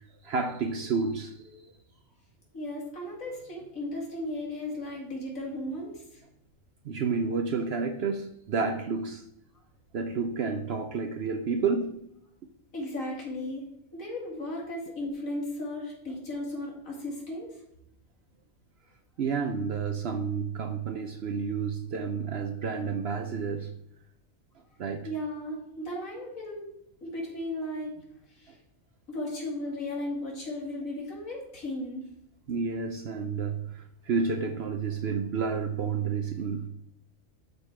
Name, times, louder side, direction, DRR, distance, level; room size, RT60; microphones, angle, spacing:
voice 1, 0.2-1.6 6.8-9.2 9.9-12.0 19.2-23.7 24.8-25.1 32.5-36.7, right 5 dB, 60° right, 0.8 m, -30 dB
voice 2, 2.5-6.2 12.7-13.6 13.9-17.6 25.0-26.7 27.0-28.6 29.1-32.0, left 1 dB, 85° left, 2.7 m, -36 dB
12.0 x 4.0 x 4.5 m
omnidirectional pair, 1.4 m